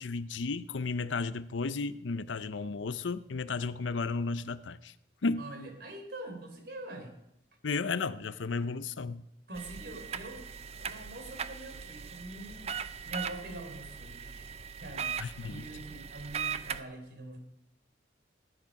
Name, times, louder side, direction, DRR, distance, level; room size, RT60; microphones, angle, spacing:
voice 1, 0.0-4.9 5.2-5.4 7.6-9.2 15.2-15.7, left 4 dB, 85° left, 0.6 m, -33 dB
voice 2, 5.4-7.2 9.5-12.8 13.0-14.5 14.8-17.4, right 2 dB, 60° right, 3.5 m, -44 dB
sound 1, 9.5-16.8, right 7 dB, 35° right, 0.5 m, -39 dB
18.0 x 10.0 x 5.3 m
head